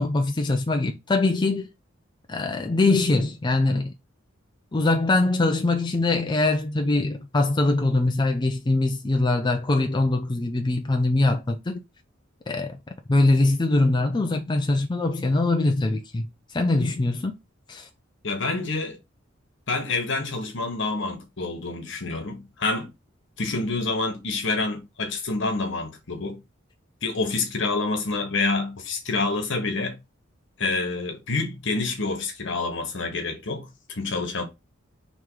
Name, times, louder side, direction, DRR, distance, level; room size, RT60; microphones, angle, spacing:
voice 1, 0.0-1.7 2.3-3.9 4.7-11.8 12.5-12.8 13.1-17.3 17.7-17.9, left 2 dB, 25° left, 0.4 m, -23 dB
voice 2, 18.2-19.0 19.7-22.9 23.4-26.4 27.0-30.0 30.6-34.4, left 3 dB, 65° left, 1.2 m, -27 dB
3.6 x 3.1 x 4.6 m
head